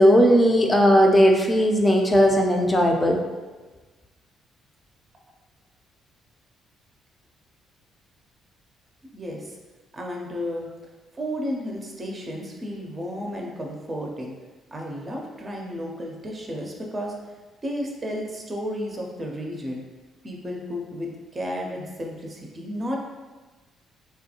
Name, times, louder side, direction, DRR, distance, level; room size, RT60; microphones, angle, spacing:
voice 1, 0.0-3.2, equal, 20° left, 1 dB, 0.6 m, -17 dB
voice 2, 9.1-9.5 9.9-10.7 11.1-14.3 14.7-17.1 17.6-19.8 20.2-23.0, equal, 30° right, 0 dB, 0.6 m, -32 dB
3.5 x 2.2 x 2.8 m, 1.3 s
hypercardioid pair, 45°, 0 cm